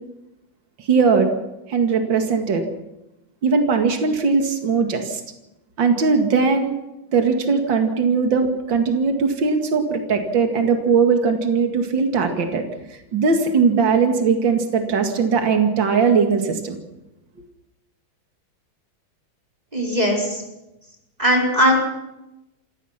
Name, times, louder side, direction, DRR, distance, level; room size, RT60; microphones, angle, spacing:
voice 1, 0.8-1.3 1.7-2.7 3.4-5.2 5.8-6.7 7.1-12.6 13.1-16.8, right 5 dB, 65° right, 5 dB, 2.8 m, -19 dB
voice 2, 19.7-20.4 21.2-21.7, equal, 20° right, -2 dB, 4.7 m, -19 dB
27.5 x 17.0 x 5.9 m, 0.92 s
omnidirectional pair, 2.3 m